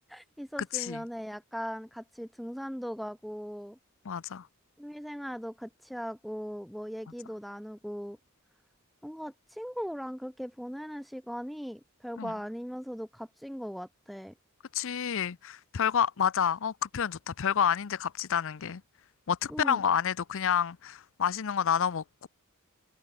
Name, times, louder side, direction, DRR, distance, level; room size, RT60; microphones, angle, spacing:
voice 1, 0.1-3.8 4.8-8.2 9.0-14.3 19.5-19.8, equal, ahead, 4.8 m, -39 dB
voice 2, 4.1-4.4 12.2-12.3 14.7-18.8 19.3-22.3, left 8 dB, 65° left, 0.6 m, -29 dB
head